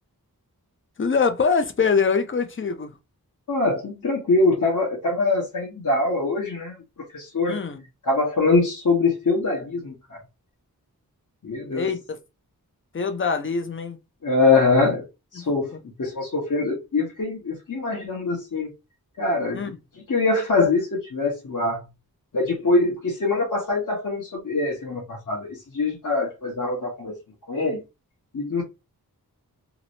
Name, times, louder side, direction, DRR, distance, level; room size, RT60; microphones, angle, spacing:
voice 1, 1.0-2.9 7.5-7.8 11.7-12.2 12.9-14.0 15.4-15.5 19.5-19.7, left 5 dB, 35° left, 0.5 m, -23 dB
voice 2, 3.5-6.8 7.1-7.6 8.0-10.2 11.4-11.9 14.2-15.0 15.3-15.7 16.0-18.7 19.2-21.9 22.3-27.1 27.5-27.8 28.3-28.6, left 3 dB, 55° left, 1.0 m, -23 dB
2.9 x 2.0 x 2.7 m
wide cardioid pair, 75°, 37 cm